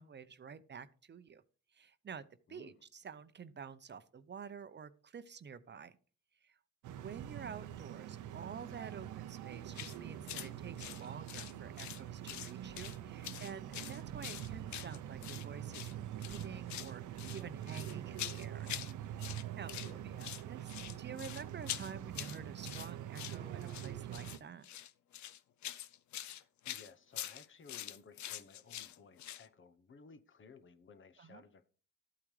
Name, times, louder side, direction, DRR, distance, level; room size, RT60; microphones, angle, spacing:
voice 1, 0.0-1.4 1.7-6.0 6.4-6.6 6.9-18.7 19.0-24.7 31.2-31.4, right 6 dB, 35° right, 0.7 m, -49 dB
voice 2, 2.5-2.8 19.7-20.0 26.2-31.7, left 5 dB, 40° left, 0.9 m, -58 dB
sound 1, 6.8-24.4, right 11 dB, 80° right, 0.7 m, -45 dB
sound 2, 9.7-10.0 10.3-10.5 10.8-12.0 12.3-13.0 13.2-15.4 15.7-15.9 16.2-16.9 17.2-18.9 19.2-19.9 20.2-29.5, left 12 dB, 70° left, 0.7 m, -45 dB
13.0 x 8.6 x 3.3 m
cardioid pair, 90°, 30 cm